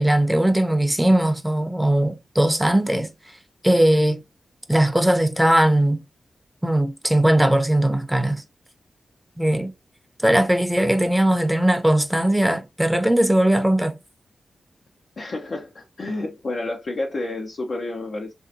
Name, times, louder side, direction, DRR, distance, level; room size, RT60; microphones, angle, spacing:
voice 1, 0.0-3.1 3.6-4.2 4.7-6.0 6.6-8.4 9.4-9.7 10.2-14.0, right 1 dB, 5° right, 0.7 m, -19 dB
voice 2, 15.2-18.3, left 2 dB, 60° left, 0.7 m, -30 dB
3.2 x 2.8 x 2.6 m
cardioid pair, 45°, 0 cm